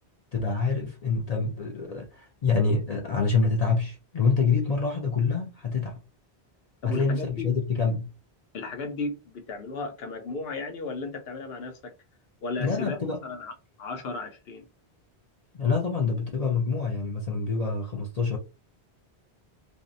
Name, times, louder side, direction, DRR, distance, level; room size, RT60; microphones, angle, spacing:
voice 1, 0.3-6.0 6.8-8.1 12.6-13.3 15.5-18.4, left 4 dB, 50° left, 0.5 m, -26 dB
voice 2, 6.8-7.5 8.5-11.9 12.4-13.5 13.8-14.6, left 3 dB, 70° left, 0.9 m, -35 dB
2.6 x 2.1 x 2.5 m
omnidirectional pair, 1.1 m